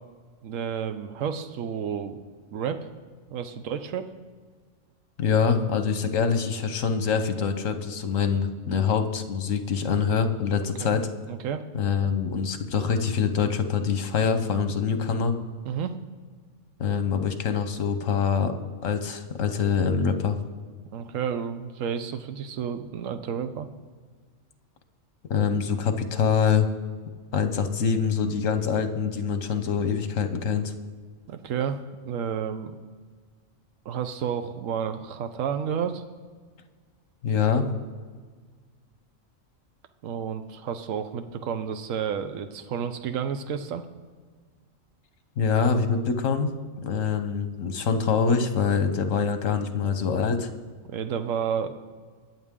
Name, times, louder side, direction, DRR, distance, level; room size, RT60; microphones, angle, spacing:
voice 1, 0.4-2.2 2.5-2.9 3.3-4.1 10.8-11.0 11.3-11.6 15.6-16.0 20.9-23.7 31.3-31.8 32.0-32.7 33.8-36.0 40.0-43.8 50.9-51.7, right 7 dB, 80° right, 9 dB, 1.1 m, -31 dB
voice 2, 5.2-11.1 11.7-15.3 16.8-18.5 18.8-20.4 25.3-26.7 27.3-30.7 37.2-37.7 45.4-46.5 46.8-50.5, left 6 dB, 75° left, 8 dB, 1.3 m, -25 dB
22.0 x 7.6 x 3.7 m, 1.5 s
omnidirectional pair, 1.3 m